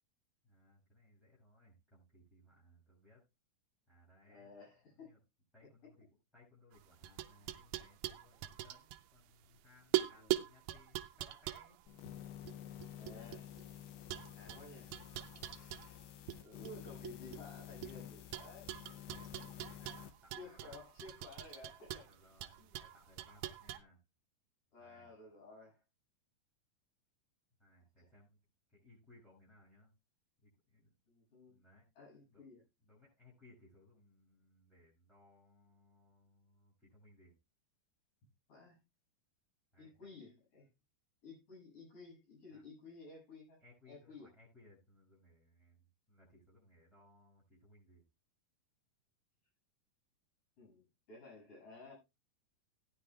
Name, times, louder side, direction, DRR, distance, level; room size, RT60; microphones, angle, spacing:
voice 1, 0.4-3.2 3.9-4.5 4.9-5.2 5.5-6.0 6.3-11.8 14.1-14.7 19.1-20.8 22.1-24.0 24.8-25.1 27.6-28.4 28.7-29.9 30.4-30.9 31.5-31.9 32.3-32.4 32.8-37.3 39.7-40.1 42.5-42.6 43.6-48.0, left 1 dB, ahead, 7.1 m, -65 dB
voice 2, 4.3-5.1 10.2-10.3 13.0-13.5 14.4-14.9 15.5-16.1 16.4-18.8 19.3-19.5 20.3-22.1 22.6-22.8 24.7-25.8 31.1-31.6 32.0-32.6 38.5-38.8 39.8-40.7 41.2-43.6 43.9-44.3 50.6-52.0, left 3 dB, 55° left, 8.8 m, -54 dB
sound 1, 6.7-9.6 9.9-13.6 14.1-16.4 16.6-17.9 18.3-23.8, right 15 dB, 80° right, 1.8 m, -42 dB
sound 2, 11.9-20.1, left 11 dB, 85° left, 2.6 m, -51 dB
17.0 x 9.8 x 2.3 m
omnidirectional pair, 4.4 m